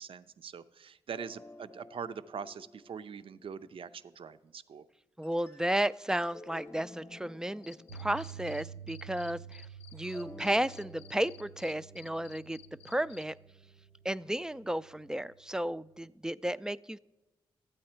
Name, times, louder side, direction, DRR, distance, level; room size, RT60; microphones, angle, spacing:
voice 1, 0.0-4.9, right 6 dB, 60° right, 13 dB, 0.5 m, -43 dB
sound 1, 1.1-4.3 5.2-9.5 9.9-14.0, left 2 dB, 20° left, 0.9 m, -54 dB
voice 2, 5.2-9.6 9.9-12.6 12.8-13.4 14.0-17.0, right 1 dB, 5° right, 17 dB, 0.3 m, -33 dB
Cricket, 7.6-8.6 8.9-13.2, left 12 dB, 90° left, 0.5 m, -54 dB
Piano, 7.9-16.0, right 8 dB, 75° right, 0.8 m, -50 dB
12.5 x 8.5 x 4.4 m, 1.1 s
cardioid pair, 55°, 11 cm